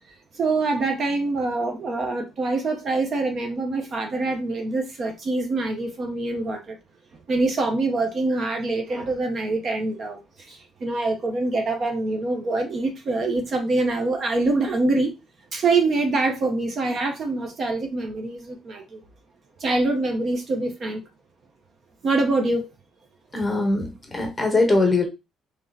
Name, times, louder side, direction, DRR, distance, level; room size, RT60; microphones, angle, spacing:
voice 1, 0.3-6.8 7.3-15.2 15.5-19.0 19.6-21.0 22.0-22.7, right 3 dB, 35° right, 0.6 m, -25 dB
voice 2, 23.3-25.1, left 2 dB, 15° left, 0.9 m, -21 dB
3.2 x 2.7 x 3.9 m
cardioid pair, 165°, 0 cm